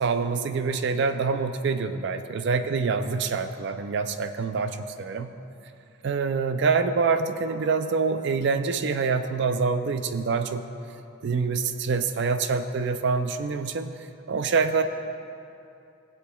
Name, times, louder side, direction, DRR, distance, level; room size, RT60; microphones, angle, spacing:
voice 1, 0.0-5.3 6.0-10.6 11.2-13.9 14.3-14.8, right 4 dB, 55° right, 9 dB, 0.4 m, -26 dB
18.5 x 7.7 x 2.3 m, 2.7 s
head